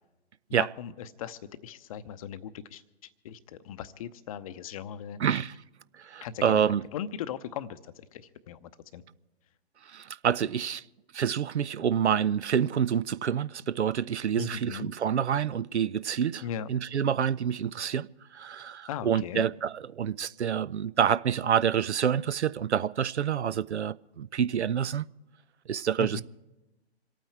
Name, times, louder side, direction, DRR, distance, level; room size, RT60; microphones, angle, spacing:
voice 1, 0.5-2.8 3.2-5.4 6.2-9.0 14.4-14.9 16.4-16.7 18.9-19.4 26.0-26.2, left 8 dB, 35° left, 0.7 m, -38 dB
voice 2, 5.2-5.5 6.0-6.8 9.9-10.8 11.1-16.4 16.7-18.1 18.3-25.0 25.7-26.2, right 8 dB, 85° right, 0.5 m, -27 dB
26.5 x 9.2 x 4.5 m
figure-of-eight pair, 125°, 33 cm